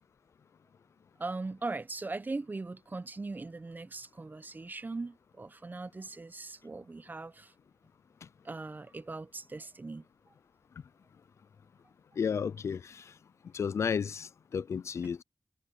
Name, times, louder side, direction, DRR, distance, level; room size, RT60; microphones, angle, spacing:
voice 1, 1.2-7.5 8.4-10.0 15.0-15.1, right 3 dB, 40° right, 1.0 m, -40 dB
voice 2, 12.2-13.1 13.5-15.2, left 6 dB, 80° left, 0.4 m, -33 dB
cardioid pair, 50°, 5 cm